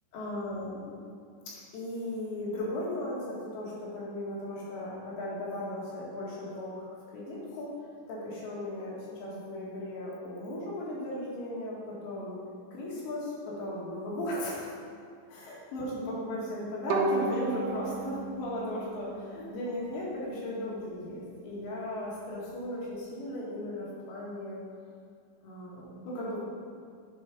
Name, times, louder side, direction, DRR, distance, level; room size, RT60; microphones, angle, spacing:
voice 1, 0.1-1.0 1.7-7.7 8.1-12.4 12.7-13.3 13.6-14.7 15.3-24.6 25.4-26.4, left 1 dB, 75° left, -6 dB, 4.1 m, -36 dB
Bowed string instrument, 16.9-20.0, right 3 dB, 80° right, 2.4 m, -34 dB
9.4 x 4.7 x 5.2 m, 2.3 s
omnidirectional pair, 5.1 m